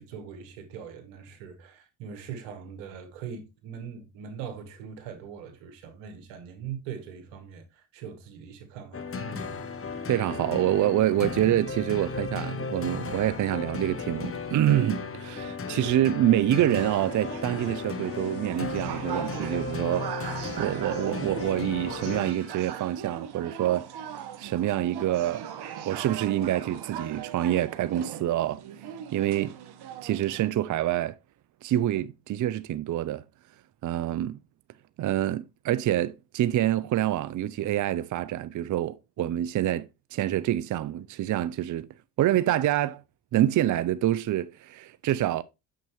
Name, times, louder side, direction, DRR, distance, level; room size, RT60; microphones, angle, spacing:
voice 1, 0.0-9.7, right 7 dB, 85° right, 2.0 m, -41 dB
sound 1, 8.9-22.7, left 4 dB, 30° left, 1.1 m, -35 dB
voice 2, 10.1-20.1 20.6-23.9 24.4-25.5 25.8-29.6 30.0-31.2 31.6-33.2 33.8-34.4 35.0-41.9 42.2-43.0 43.3-45.4, right 13 dB, 45° right, 0.5 m, -26 dB
sound 2, 16.7-30.5, right 9 dB, 60° right, 1.4 m, -39 dB
6.8 x 6.2 x 3.0 m
supercardioid pair, 65°, 43 cm